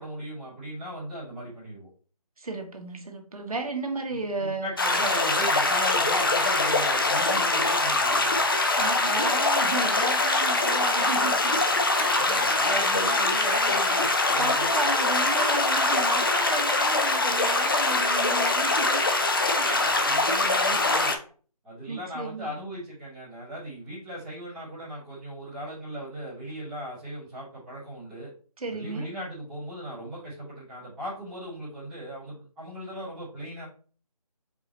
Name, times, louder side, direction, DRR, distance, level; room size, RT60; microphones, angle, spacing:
voice 1, 0.0-1.9 4.4-8.4 12.1-14.7 19.7-21.2 21.6-28.3 28.7-33.6, equal, ahead, -13 dB, 0.7 m, -37 dB
voice 2, 2.4-4.7 8.7-11.5 12.0-12.4 14.4-19.0 19.6-20.0 21.9-22.6 28.6-29.1, right 3 dB, 65° right, 4 dB, 1.1 m, -33 dB
sound 1, 4.8-21.2, left 2 dB, 35° left, 0.5 m, -23 dB
4.8 x 2.8 x 4.0 m, 0.41 s
figure-of-eight pair, 160°, 20 cm